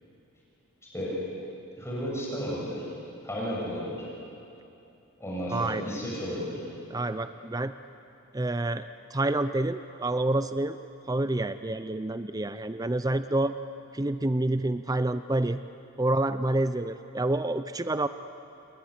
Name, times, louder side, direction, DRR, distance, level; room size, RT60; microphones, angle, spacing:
voice 1, 1.7-2.9 3.2-4.1 5.2-6.6, equal, 10° left, -6 dB, 6.9 m, -33 dB
voice 2, 5.5-5.8 6.9-7.7 8.3-8.9 9.1-10.8 11.1-13.5 13.9-15.6 16.0-18.1, right 2 dB, 15° right, 11 dB, 0.5 m, -28 dB
28.5 x 20.5 x 9.9 m, 2.8 s
head